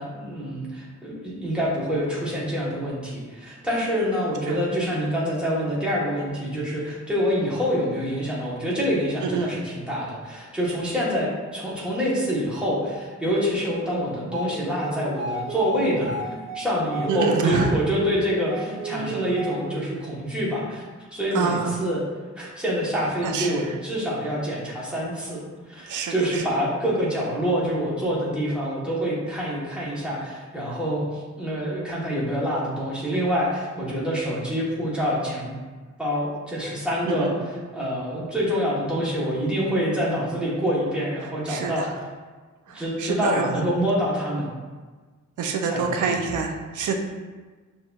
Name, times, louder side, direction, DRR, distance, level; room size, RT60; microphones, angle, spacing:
voice 1, 0.0-20.8 21.1-22.0 22.4-35.5 36.0-37.3 37.7-41.9 42.7-44.5 45.6-46.1, equal, 5° right, -7 dB, 1.0 m, -26 dB
voice 2, 9.2-9.5 17.1-17.8 21.3-21.8 23.2-23.7 25.9-26.4 37.1-37.4 41.5-41.9 42.7-43.5 45.4-47.0, right 5 dB, 90° right, 3 dB, 0.5 m, -26 dB
sound 1, 14.2-20.0, right 2 dB, 25° right, 0.6 m, -33 dB
6.2 x 2.6 x 2.3 m, 1.4 s
wide cardioid pair, 160°, 29 cm